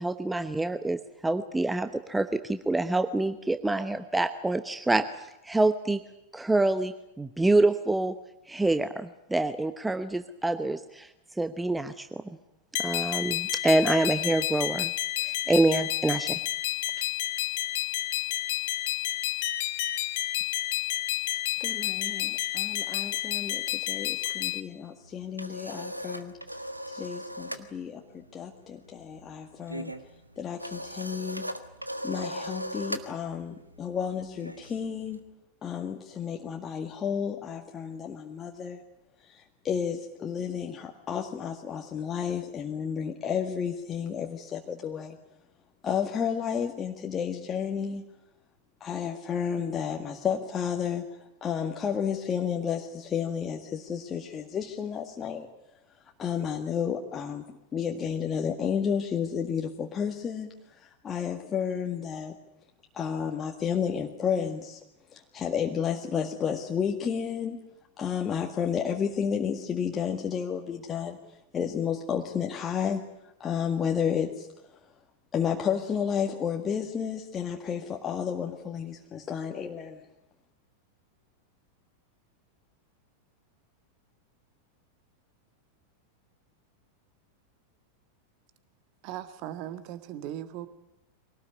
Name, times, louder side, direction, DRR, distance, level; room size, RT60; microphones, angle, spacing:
voice 1, 0.0-5.0 5.4-6.0 6.3-8.1 8.5-11.1 11.4-12.2 12.8-14.9 15.2-16.4 17.0-17.1, right 2 dB, 5° right, 10 dB, 1.0 m, -26 dB
sound 1, 12.7-24.6, left 14 dB, 50° left, 1.3 m, -30 dB
voice 2, 21.6-26.3 26.9-29.9 30.4-31.4 32.0-35.2 35.6-38.8 39.2-45.2 45.8-48.1 48.8-55.5 56.2-57.4 57.7-62.3 62.9-64.8 65.1-67.6 68.0-71.2 71.5-74.5 75.3-80.0, left 7 dB, 25° left, 2 dB, 1.9 m, -31 dB
sound 2, 25.0-27.7 28.0-28.3 28.5-35.2, equal, 90° right, 1.5 m, -39 dB
voice 3, 89.0-90.7, right 11 dB, 45° right, 11 dB, 1.8 m, -38 dB
24.5 x 18.5 x 9.8 m, 0.92 s
figure-of-eight pair, 90°, 0 cm